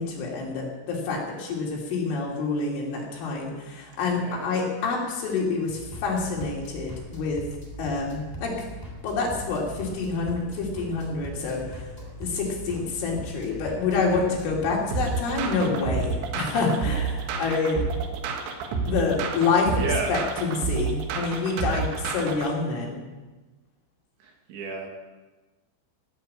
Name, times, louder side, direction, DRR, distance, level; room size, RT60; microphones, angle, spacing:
voice 1, 0.0-7.4 7.8-8.6 9.0-11.9 12.2-17.8 18.9-19.8 20.1-23.0, left 4 dB, 80° left, -2 dB, 5.7 m, -27 dB
voice 2, 4.0-4.5 19.8-20.2 24.2-24.9, right 4 dB, 70° right, 1 dB, 4.5 m, -32 dB
sound 1, 5.7-15.6, right 1 dB, 5° left, 2.2 m, -40 dB
sound 2, 14.9-22.5, right 5 dB, 90° right, 4.1 m, -29 dB
18.0 x 8.8 x 8.8 m, 1.2 s
omnidirectional pair, 5.5 m